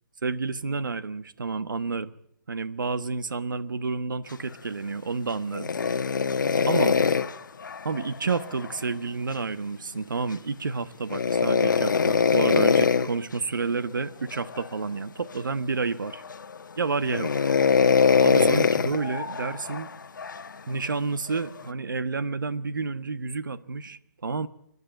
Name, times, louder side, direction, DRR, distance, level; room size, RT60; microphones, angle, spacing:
voice 1, 0.2-2.1 2.5-5.7 6.7-7.0 7.8-16.2 16.8-17.3 18.2-19.9 20.7-24.5, right 4 dB, 80° right, 1.2 m, -30 dB
sound 1, 5.5-8.8 11.1-13.1 14.3-14.7 15.3-15.4 16.1-16.6 17.1-20.5 21.3-21.7, left 5 dB, 75° left, 1.2 m, -23 dB
28.5 x 11.0 x 9.0 m
hypercardioid pair, 155°, 11 cm